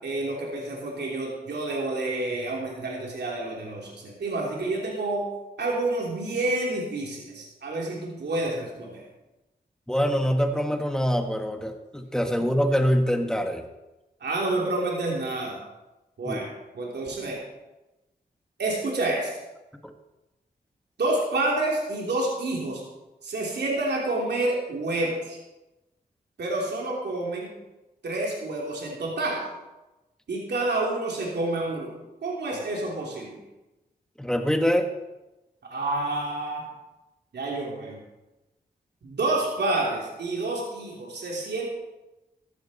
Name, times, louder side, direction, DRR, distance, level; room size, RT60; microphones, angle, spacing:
voice 1, 0.0-5.2 5.6-9.0 12.4-12.5 14.2-15.6 16.2-17.4 18.6-19.3 21.0-22.8 23.2-25.4 26.4-27.5 28.0-29.4 30.3-31.9 32.2-33.4 35.7-36.6 37.3-38.0 39.0-41.7, right 2 dB, 85° right, -2 dB, 3.3 m, -28 dB
voice 2, 9.9-13.6 16.2-16.4 19.8-19.9 34.2-34.9, equal, 5° left, 5 dB, 1.6 m, -24 dB
15.0 x 12.0 x 4.3 m, 1.0 s
cardioid pair, 70°, 17 cm